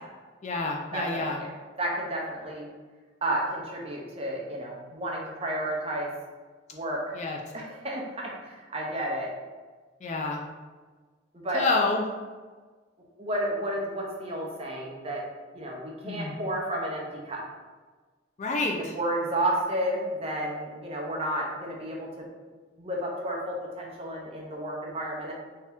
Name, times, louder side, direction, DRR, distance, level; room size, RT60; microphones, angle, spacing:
voice 1, 0.4-1.4 7.1-7.4 10.0-10.4 11.5-12.0 16.0-16.4 18.4-18.9, left 3 dB, 35° left, 1 dB, 0.4 m, -28 dB
voice 2, 0.9-1.5 1.8-2.7 3.2-6.1 6.7-7.2 7.5-9.3 11.3-11.7 13.2-15.2 15.5-17.4 18.8-22.2 22.8-25.3, right 1 dB, 30° right, -2 dB, 0.6 m, -31 dB
3.4 x 2.8 x 3.4 m, 1.4 s
head